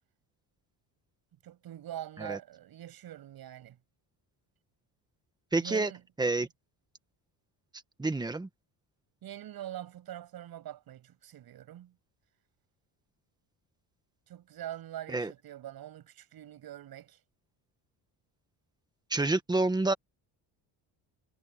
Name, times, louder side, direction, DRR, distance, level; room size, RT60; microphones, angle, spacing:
voice 1, 1.4-3.8 5.6-6.0 9.2-11.9 14.3-17.2, right 12 dB, 55° right, 7.1 m, -44 dB
voice 2, 5.5-5.9 6.2-6.5 8.0-8.5 15.1-15.3 19.1-19.9, right 2 dB, 10° right, 1.4 m, -28 dB
cardioid pair, 160°, 43 cm